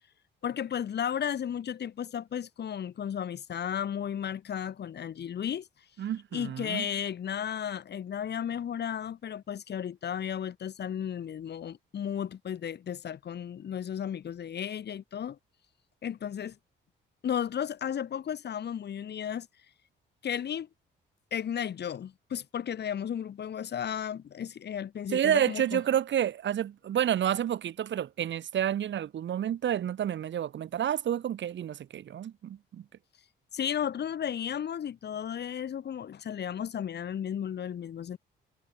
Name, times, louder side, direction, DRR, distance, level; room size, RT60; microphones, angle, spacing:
voice 1, 0.4-5.7 6.3-15.4 16.0-16.6 17.2-19.5 20.2-20.7 21.3-25.8 33.5-38.2, left 9 dB, 60° left, 3.4 m, -34 dB
voice 2, 6.0-6.9 25.1-32.8, right 10 dB, 65° right, 7.1 m, -29 dB
cardioid pair, 90°, 20 cm